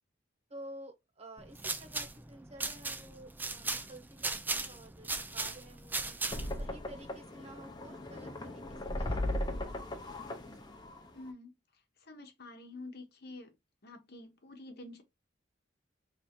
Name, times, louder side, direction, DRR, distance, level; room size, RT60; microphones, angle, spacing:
voice 1, 0.5-6.2 6.6-10.7, right 1 dB, 35° right, 1.2 m, -52 dB
sound 1, 1.4-6.6, right 3 dB, 10° right, 0.4 m, -37 dB
sound 2, 6.3-11.3, left 1 dB, 25° left, 0.8 m, -38 dB
voice 2, 11.1-11.5 12.0-13.5 13.8-15.0, left 2 dB, 60° left, 1.0 m, -48 dB
3.4 x 2.7 x 4.3 m
head